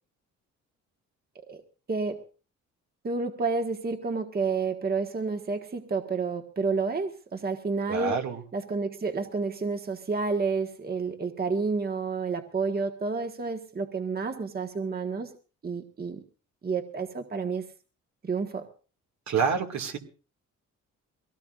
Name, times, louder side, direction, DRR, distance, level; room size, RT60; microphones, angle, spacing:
voice 1, 3.0-8.2 8.5-15.3 15.6-16.2 16.6-17.6 18.2-18.6, right 4 dB, 30° right, 5 dB, 1.5 m, -30 dB
voice 2, 7.9-8.4 19.3-20.0, right 6 dB, 65° right, 4 dB, 2.4 m, -27 dB
23.0 x 17.5 x 2.6 m, 0.36 s
cardioid pair, 90°, 30 cm